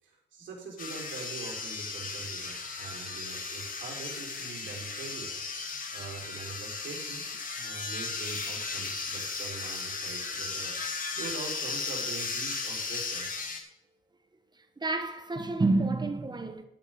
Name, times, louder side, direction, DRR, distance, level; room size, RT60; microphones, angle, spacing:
voice 1, 0.0-5.4 5.9-7.2 7.5-10.7 11.1-13.3, right 4 dB, 70° right, 4.7 m, -43 dB
sound 1, 0.8-13.6, left 4 dB, 45° left, 2.2 m, -36 dB
voice 2, 14.5-16.6, right 2 dB, 20° right, 1.4 m, -29 dB
11.5 x 10.0 x 3.9 m
cardioid pair, 90°, 20 cm